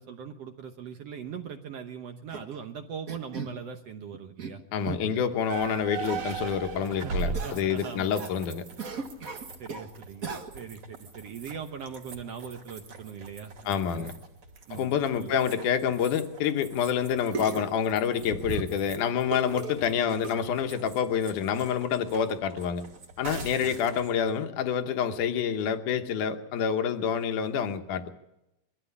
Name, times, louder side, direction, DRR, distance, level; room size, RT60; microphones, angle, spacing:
voice 1, 0.0-5.2 6.9-8.2 9.6-14.1 14.7-15.3 23.6-23.8, right 7 dB, 65° right, 6 dB, 1.6 m, -41 dB
sound 1, 2.3-2.6 3.1-3.6 4.1-4.5 4.8-5.3 6.0-6.4 7.3-8.3 8.8-9.9 10.2-10.8 11.4-11.5 11.9-12.0 12.9-13.0 13.6-13.7 14.0-14.1 14.6-14.7 15.2-15.3 15.5-15.6 16.4-16.5 17.3-17.8 18.3-18.9 19.3-19.8 20.2-20.3, right 4 dB, 90° right, 0.7 m, -37 dB
voice 2, 4.7-8.6 13.7-14.1 14.7-22.8 23.2-28.1, left 8 dB, 70° left, 7 dB, 2.5 m, -27 dB
sound 2, 5.5-24.3, right 5 dB, 50° right, 3.8 m, -41 dB
22.0 x 14.0 x 8.5 m, 0.90 s
omnidirectional pair, 4.0 m